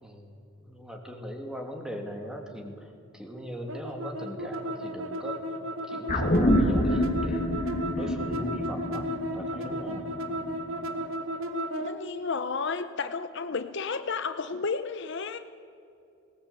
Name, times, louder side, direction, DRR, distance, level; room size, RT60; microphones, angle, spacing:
voice 1, 0.0-7.5 7.9-10.1, equal, 5° right, 3 dB, 2.5 m, -40 dB
sound 1, 3.7-11.9, equal, 80° right, 1.8 m, -34 dB
sound 2, 6.1-10.7 11.0-11.1, left 1 dB, 40° left, 2.1 m, -27 dB
voice 2, 11.8-15.4, left 4 dB, 60° left, 10 dB, 0.8 m, -32 dB
19.5 x 18.5 x 8.4 m, 2.6 s
head